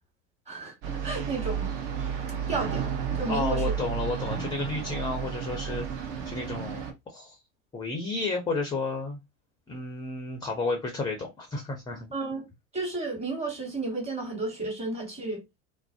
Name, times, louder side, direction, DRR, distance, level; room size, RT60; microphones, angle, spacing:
voice 1, 0.5-1.7 2.5-2.9 3.1-3.7 12.1-12.5 12.7-15.4, right 2 dB, 15° right, 1.2 m, -32 dB
sound 1, 0.8-6.9, right 7 dB, 50° right, 0.7 m, -32 dB
voice 2, 3.3-7.4 7.7-9.2 9.7-12.1, left 3 dB, 10° left, 0.5 m, -32 dB
2.4 x 2.0 x 2.4 m
hypercardioid pair, 85°, 43 cm